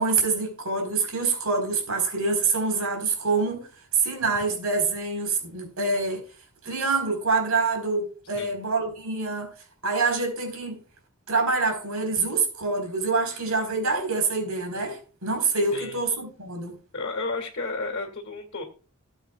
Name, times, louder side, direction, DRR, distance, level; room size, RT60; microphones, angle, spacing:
voice 1, 0.0-3.7 3.9-6.2 6.6-9.5 9.8-10.8 11.3-16.8, right 4 dB, 90° right, 4.1 m, -26 dB
voice 2, 16.9-18.6, left 3 dB, 60° left, 2.2 m, -32 dB
18.5 x 8.0 x 2.3 m
head